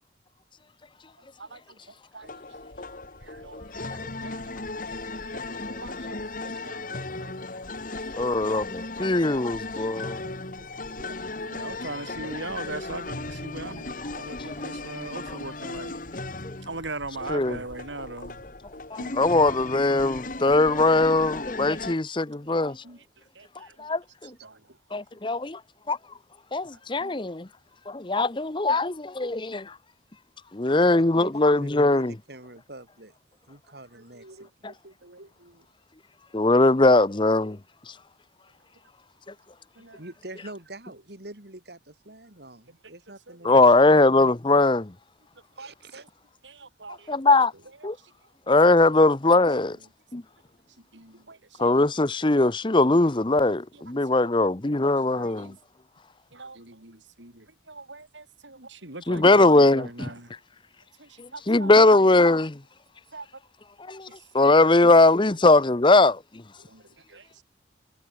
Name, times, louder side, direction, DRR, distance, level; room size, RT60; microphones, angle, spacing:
voice 1, 1.4-1.8 2.1-2.4 3.2-4.5 4.9-7.4 7.9-9.1 9.8-10.4 11.0-16.0 16.6-18.4 19.0-19.2 20.3-20.4 21.7-21.8 22.4-23.9 24.4-24.8 25.2-25.4 27.0-27.2 33.7-35.6 39.8-40.0 42.7-42.8 43.3-43.6 45.6-46.1 46.4-47.2 49.3-49.4 50.9-51.8 53.7-53.8 54.1-54.3 55.2-55.6 56.3-60.3 61.0-61.7 63.1-63.3 64.1-64.2 64.7-65.2 66.6-67.4, right 2 dB, 80° right, 5.6 m, -42 dB
sound 1, 2.2-22.0, left 2 dB, 45° left, 2.1 m, -36 dB
voice 2, 8.2-10.2 14.5-14.6 16.4-16.6 17.3-17.6 18.9-22.8 23.8-24.3 24.9-25.6 25.9-26.0 26.5-27.5 27.9-29.7 30.5-32.1 34.6-34.7 36.3-37.6 43.4-44.9 47.1-47.5 47.8-48.0 48.5-49.8 50.1-50.2 51.6-55.5 59.1-60.1 61.2-62.6 63.9-64.1 64.3-66.2, left 2 dB, 25° left, 0.8 m, -20 dB
voice 3, 31.2-33.1 33.5-34.5 39.9-43.7 45.6-46.0 57.2-57.3, right 1 dB, 60° right, 3.5 m, -45 dB
head